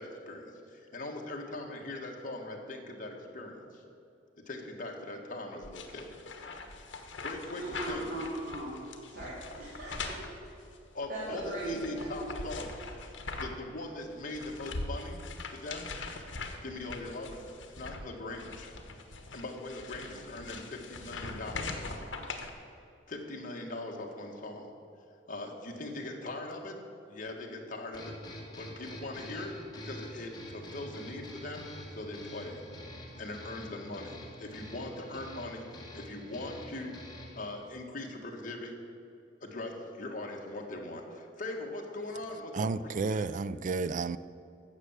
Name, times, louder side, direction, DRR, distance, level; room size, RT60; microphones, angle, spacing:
voice 1, 0.0-3.8 4.4-6.1 7.2-8.1 10.9-12.7 13.4-15.9 16.6-18.7 19.3-21.9 23.1-24.7 25.3-26.8 27.1-28.2 28.6-32.6 33.2-37.1 37.3-38.8 39.4-43.3, left 2 dB, 45° left, 0 dB, 1.7 m, -41 dB
sound 1, 5.6-13.7 14.0-22.5, left 3 dB, 70° left, 1.3 m, -42 dB
voice 2, 7.6-10.2 11.1-12.3, right 1 dB, 55° right, -9 dB, 3.5 m, -38 dB
sound 2, 27.9-37.5, left 1 dB, 20° left, 2.1 m, -46 dB
voice 3, 42.5-44.2, right 4 dB, 40° right, 16 dB, 0.4 m, -31 dB
13.0 x 7.8 x 7.4 m, 2.6 s
head